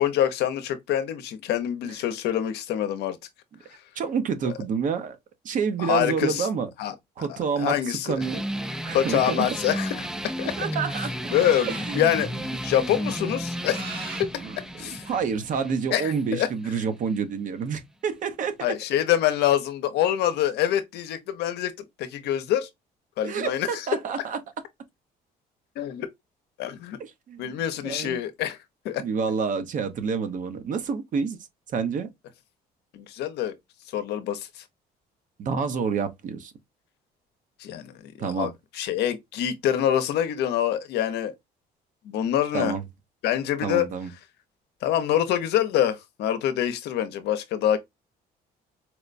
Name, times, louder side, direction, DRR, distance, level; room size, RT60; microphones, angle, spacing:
voice 1, 0.0-3.2 3.7-3.8 4.4-4.5 5.8-6.5 6.8-8.2 8.9-10.1 10.4-10.5 11.3-12.3 12.6-13.8 14.2-14.3 14.8-15.1 15.9-16.5 18.6-21.7 22.0-22.7 23.2-23.9 25.8-26.1 26.6-27.0 27.4-28.6 28.8-29.0 32.9-33.6 33.9-34.6 37.6-41.3 42.0-42.8 43.2-43.9 44.8-47.8, left 11 dB, 75° left, 0.7 m, -25 dB
voice 2, 4.0-5.2 5.4-6.7 7.2-8.4 8.8-9.5 10.6-11.1 11.7-12.1 14.4-14.5 15.1-18.7 23.2-24.4 27.0-28.2 29.0-31.4 31.7-32.1 35.4-36.5 38.2-38.5 42.5-42.8 43.6-44.1, right 6 dB, 50° right, 0.7 m, -28 dB
sound 1, 8.2-17.2, equal, 5° right, 0.4 m, -33 dB
sound 2, 8.2-15.5, right 4 dB, 70° right, 1.9 m, -43 dB
4.4 x 2.1 x 2.4 m
cardioid pair, 110°, 17 cm